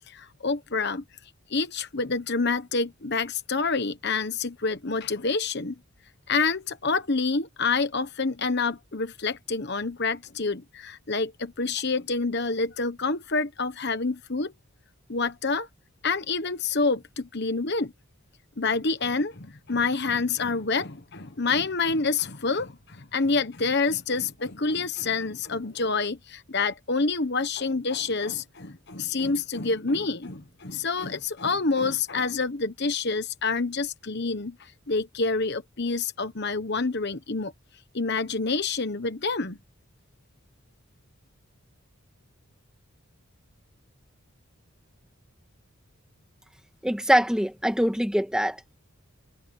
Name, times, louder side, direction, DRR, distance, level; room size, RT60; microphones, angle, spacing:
voice 1, 0.1-1.0 1.5-5.8 6.3-14.5 15.1-15.7 16.0-17.9 18.6-37.5 37.9-39.6, left 4 dB, 50° left, 1.2 m, -27 dB
voice 2, 46.8-48.8, equal, 5° right, 1.7 m, -23 dB
head